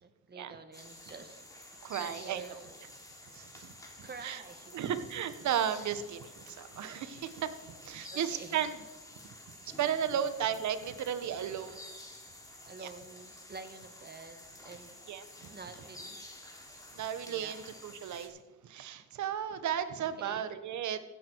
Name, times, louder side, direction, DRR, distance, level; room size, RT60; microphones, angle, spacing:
voice 1, 0.0-1.4 2.0-2.8 4.0-4.9 8.1-8.6 10.1-10.3 12.6-15.0 15.5-16.3 17.2-17.6 20.2-20.4, right 4 dB, 35° right, 8 dB, 1.8 m, -48 dB
sound 1, 0.7-18.3, left 1 dB, 10° left, 3.3 m, -50 dB
voice 2, 1.8-2.4 3.3-3.7 4.0-4.4 4.7-8.8 9.8-11.8 12.8-12.9 15.1-15.5 16.9-21.0, right 9 dB, 70° right, 11 dB, 1.3 m, -34 dB
15.5 x 11.0 x 4.7 m, 1.2 s
cardioid pair, 90°, 30 cm